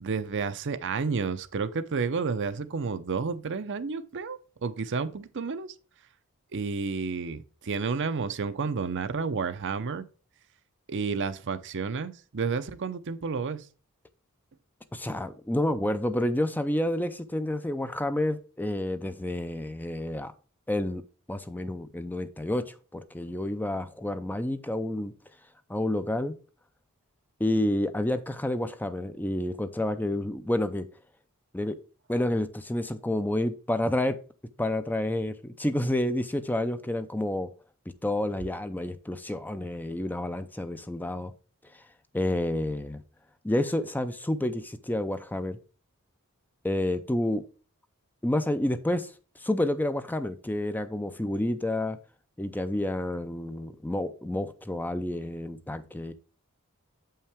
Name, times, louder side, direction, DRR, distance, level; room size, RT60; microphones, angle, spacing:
voice 1, 0.0-5.7 6.5-10.1 10.9-13.7, right 5 dB, 55° right, 0.6 m, -31 dB
voice 2, 14.9-20.3 20.7-21.0 21.3-25.1 25.7-26.4 27.4-30.9 31.5-31.8 32.1-34.2 34.6-37.5 38.0-41.3 41.7-41.8 42.1-43.0 43.4-45.6 46.6-47.4 48.2-52.0 52.4-56.1, left 1 dB, 10° left, 0.5 m, -29 dB
7.6 x 5.6 x 3.5 m
head